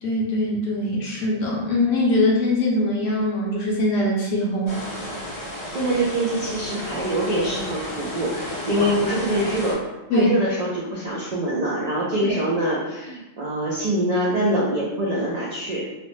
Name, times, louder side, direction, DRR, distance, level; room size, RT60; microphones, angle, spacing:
voice 1, 0.0-4.7 8.8-8.9 10.1-10.3 12.2-12.3, left 1 dB, 65° left, -2 dB, 0.7 m, -22 dB
sound 1, 4.7-9.7, equal, 45° left, 0.3 m, -33 dB
voice 2, 5.2-9.8 10.1-15.9, right 1 dB, 80° right, -6 dB, 0.3 m, -24 dB
2.9 x 2.0 x 3.1 m, 1.0 s
omnidirectional pair, 1.4 m